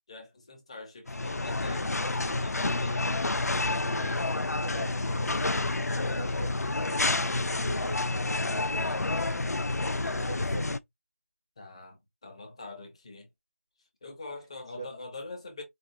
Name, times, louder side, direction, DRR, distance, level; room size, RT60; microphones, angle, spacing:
voice 1, 0.1-3.3 9.9-10.5 11.6-13.3 14.0-15.6, left 3 dB, 20° left, 0.8 m, -44 dB
sound 1, 1.1-10.8, left 2 dB, 85° left, 0.5 m, -29 dB
voice 2, 3.8-9.0 10.1-10.7 14.8-14.9, right 3 dB, 15° right, 0.6 m, -43 dB
4.9 x 2.4 x 2.6 m
figure-of-eight pair, 170°, 8 cm